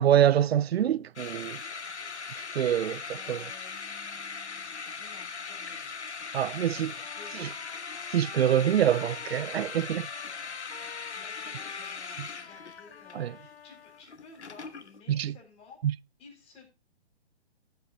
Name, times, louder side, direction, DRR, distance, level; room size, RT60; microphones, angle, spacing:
voice 1, 0.0-1.6 2.3-3.4 6.3-6.9 7.4-7.5 8.1-10.1 13.1-13.4 15.1-15.3 15.8-15.9, right 10 dB, 65° right, 0.5 m, -25 dB
sound 1, 1.2-15.0, left 5 dB, 85° left, 1.2 m, -40 dB
voice 2, 3.0-6.0 6.5-7.5 11.1-15.8 16.2-16.7, left 4 dB, 20° left, 4.0 m, -54 dB
Trumpet, 6.9-14.0, left 7 dB, 60° left, 1.2 m, -47 dB
16.0 x 8.0 x 2.3 m
hypercardioid pair, 140°, 33 cm